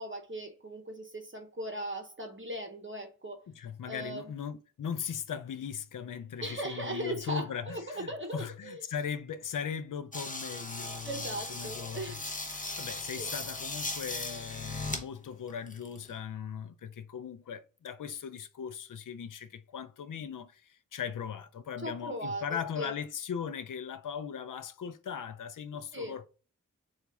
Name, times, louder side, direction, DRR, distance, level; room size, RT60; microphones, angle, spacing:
voice 1, 0.0-3.4 3.9-4.2 6.4-8.8 11.0-12.2 13.1-13.3 21.8-22.9 25.9-26.2, right 1 dB, 35° right, 0.9 m, -38 dB
voice 2, 3.5-12.2 12.8-26.3, left 7 dB, 70° left, 0.5 m, -39 dB
Electic Shaving, 10.1-15.0 15.5-16.2, left 2 dB, 25° left, 0.8 m, -38 dB
4.0 x 2.4 x 4.6 m
wide cardioid pair, 45°, 33 cm